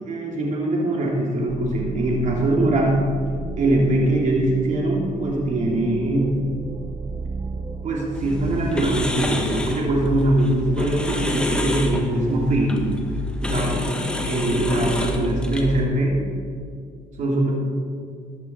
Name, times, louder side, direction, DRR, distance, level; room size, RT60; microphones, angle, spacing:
voice 1, 0.0-3.0 3.6-6.3 7.8-12.8 13.4-14.0 14.3-16.2 17.2-17.5, right 1 dB, 45° right, -2 dB, 3.0 m, -22 dB
sound 1, 1.5-9.1, right 4 dB, 20° right, 0.8 m, -33 dB
sound 2, 8.1-15.8, left 1 dB, 5° left, 1.6 m, -27 dB
14.5 x 11.5 x 4.4 m, 2.3 s
cardioid pair, 110°, 17 cm